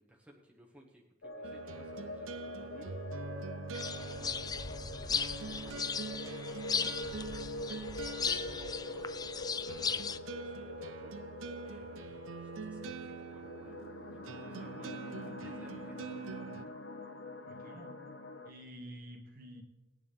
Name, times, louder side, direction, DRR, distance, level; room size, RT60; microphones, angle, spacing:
voice 1, 0.0-2.9 3.8-5.9 6.4-9.1 9.7-11.2 11.6-13.8 14.1-16.7, right 1 dB, 5° right, -2 dB, 1.2 m, -59 dB
sound 1, 1.2-18.5, left 2 dB, 70° left, 1.2 m, -45 dB
sound 2, 1.4-16.6, right 4 dB, 90° right, 0.6 m, -45 dB
sound 3, 3.7-10.2, left 6 dB, 20° left, 0.4 m, -37 dB
voice 2, 17.5-18.1 18.4-19.6, equal, 50° right, 1 dB, 2.1 m, -50 dB
19.0 x 9.7 x 3.5 m, 1.1 s
head